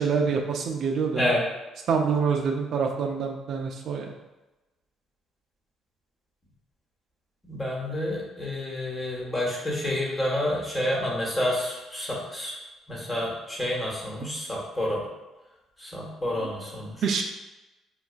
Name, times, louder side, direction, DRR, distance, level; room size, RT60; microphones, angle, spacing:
voice 1, 0.0-1.3 1.9-4.1 17.0-17.2, right 5 dB, 65° right, 2 dB, 0.4 m, -26 dB
voice 2, 7.5-12.6 12.9-15.0 15.8-17.0, left 1 dB, 20° left, -4 dB, 1.2 m, -29 dB
5.0 x 2.3 x 2.3 m, 1.1 s
cardioid pair, 90°, 0 cm